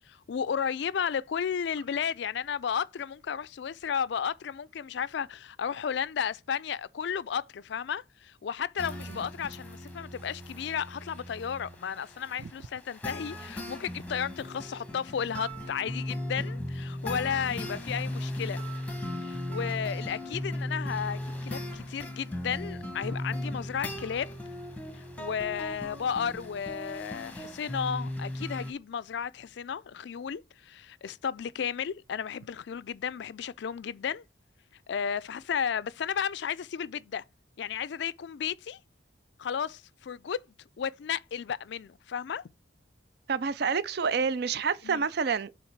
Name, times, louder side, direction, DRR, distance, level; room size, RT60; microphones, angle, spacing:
voice 1, 0.0-18.6 19.2-24.3 25.2-34.2 34.9-37.2 37.6-38.8 39.4-40.4 40.8-42.4 44.8-45.1, left 7 dB, 60° left, 0.3 m, -33 dB
sound 1, 8.8-28.7, left 1 dB, 5° left, 1.0 m, -37 dB
voice 2, 43.3-45.5, right 5 dB, 55° right, 0.4 m, -28 dB
7.2 x 3.5 x 4.5 m
head